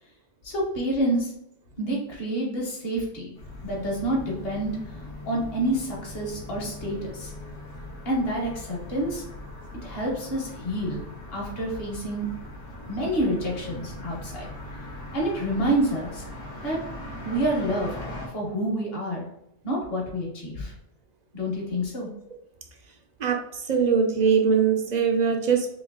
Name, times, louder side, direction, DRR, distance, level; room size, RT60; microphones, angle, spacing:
voice 1, 0.4-1.3 1.8-3.3 3.6-4.8 5.3-7.3 8.0-9.2 9.8-11.0 11.3-12.3 12.9-14.5 15.1-16.2 16.6-16.8 17.2-17.9 18.3-19.3 19.6-20.7 21.3-22.1, right 1 dB, 55° left, -2 dB, 1.3 m, -28 dB
sound 1, 3.4-18.3, left 1 dB, 75° left, 1.3 m, -40 dB
voice 2, 23.2-25.8, right 6 dB, 55° right, 3 dB, 0.4 m, -22 dB
3.1 x 2.9 x 3.6 m, 0.76 s
omnidirectional pair, 1.2 m